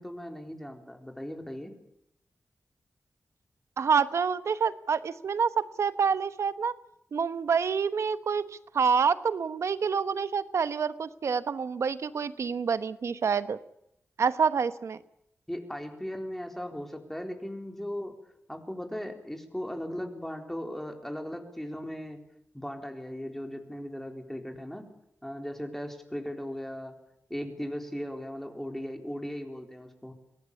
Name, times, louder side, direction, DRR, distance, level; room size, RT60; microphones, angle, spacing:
voice 1, 0.0-1.7 15.5-18.1 18.5-22.2 22.5-24.9 25.2-26.9 27.3-30.1, equal, 5° left, 4 dB, 4.0 m, -37 dB
voice 2, 3.8-6.7 7.1-8.4 8.7-13.6 14.2-15.0, right 6 dB, 75° right, 13 dB, 1.1 m, -27 dB
23.0 x 18.0 x 8.6 m, 0.78 s
cardioid pair, 75°, 5 cm